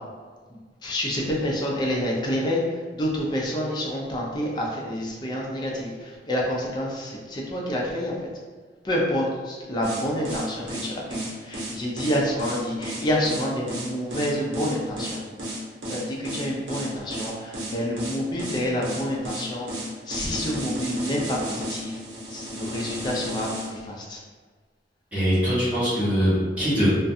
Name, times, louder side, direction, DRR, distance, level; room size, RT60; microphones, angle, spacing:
voice 1, 0.5-8.3 8.8-15.2 15.9-19.7 20.1-22.0 22.3-24.2, equal, 25° left, -3 dB, 0.4 m, -28 dB
sound 1, 9.8-23.7, equal, 90° right, 0.6 m, -33 dB
voice 2, 25.1-26.9, equal, 10° right, -13 dB, 1.1 m, -22 dB
2.4 x 2.2 x 2.6 m, 1.5 s
head